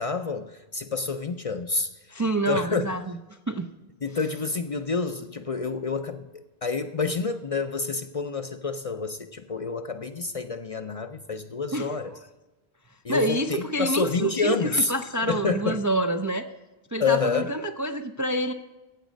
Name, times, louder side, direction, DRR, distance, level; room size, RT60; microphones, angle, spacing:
voice 1, 0.0-2.9 4.0-6.3 6.6-12.1 13.0-14.9 15.2-15.8 17.0-17.5, left 4 dB, 45° left, 8 dB, 0.5 m, -28 dB
voice 2, 2.1-3.0 3.5-3.7 11.7-11.9 13.1-16.5 16.9-18.5, right 1 dB, 30° right, 6 dB, 0.4 m, -27 dB
15.0 x 8.2 x 5.2 m, 1.1 s
omnidirectional pair, 1.0 m